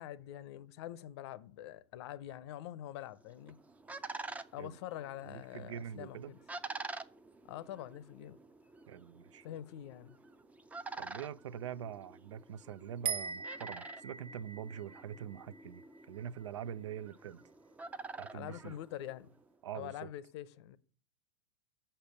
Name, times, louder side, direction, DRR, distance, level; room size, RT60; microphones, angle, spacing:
voice 1, 0.0-3.6 4.5-6.4 7.5-8.4 9.4-10.2 18.3-19.3 19.7-20.8, left 12 dB, 65° left, 0.7 m, -45 dB
sound 1, 3.2-19.5, right 3 dB, 10° right, 0.4 m, -49 dB
voice 2, 5.2-6.3 8.9-9.5 11.0-17.4 18.2-18.8 19.6-20.1, right 9 dB, 90° right, 0.5 m, -44 dB
sound 2, 13.1-16.4, right 6 dB, 40° right, 0.9 m, -41 dB
6.8 x 5.7 x 6.9 m
hypercardioid pair, 115°, 15 cm